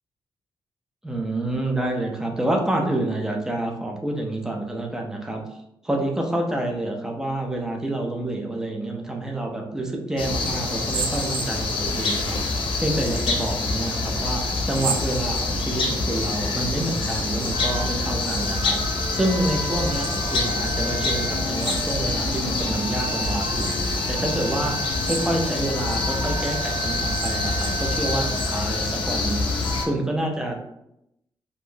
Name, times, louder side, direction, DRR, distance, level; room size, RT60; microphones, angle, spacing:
voice 1, 1.0-5.4 5.8-12.4 12.8-18.8 19.1-24.8 25.0-30.6, right 1 dB, 5° right, 1 dB, 0.4 m, -28 dB
sound 1, 10.2-29.9, left 3 dB, 85° left, 0.5 m, -26 dB
sound 2, 10.7-12.0 13.0-13.6 14.6-15.8 16.8-17.6 17.8-18.8 19.8-20.4 21.5-22.3 22.9-23.0 23.5-24.0 24.9-25.6 26.1-26.2 26.9-27.9, right 5 dB, 65° right, 0.4 m, -35 dB
sound 3, 17.5-29.9, right 2 dB, 15° left, 1.4 m, -34 dB
3.4 x 2.5 x 2.2 m, 0.83 s
wide cardioid pair, 145°, 8 cm